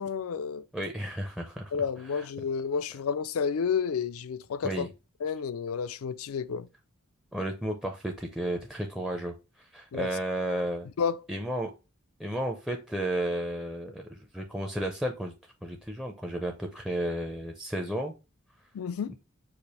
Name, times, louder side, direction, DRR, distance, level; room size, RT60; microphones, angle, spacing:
voice 1, 0.0-0.6 1.7-4.9 5.2-6.7 9.9-10.1 11.0-11.2 18.7-19.2, left 6 dB, 75° left, 0.4 m, -30 dB
voice 2, 0.7-1.7 2.0-2.3 4.6-4.9 7.3-10.9 11.3-11.7 12.2-15.3 15.6-18.1 19.1-19.2, right 1 dB, 5° right, 0.5 m, -33 dB
4.9 x 2.5 x 4.1 m
head